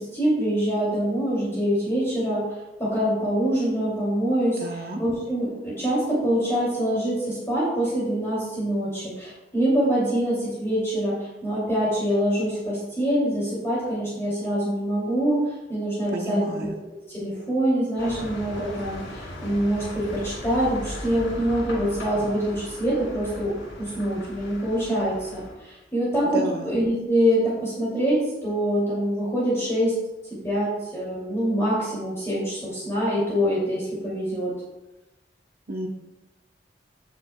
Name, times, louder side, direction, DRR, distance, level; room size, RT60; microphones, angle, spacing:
voice 1, 0.0-16.5 17.1-23.5 23.8-29.9 30.4-34.5, equal, 15° left, -9 dB, 2.8 m, -25 dB
voice 2, 4.6-5.0 16.1-16.7 26.3-26.8 35.7-35.9, right 1 dB, 55° right, 2 dB, 1.0 m, -31 dB
sound 1, 18.0-25.5, left 1 dB, 80° left, 2.7 m, -38 dB
16.0 x 6.0 x 2.3 m, 1.0 s
head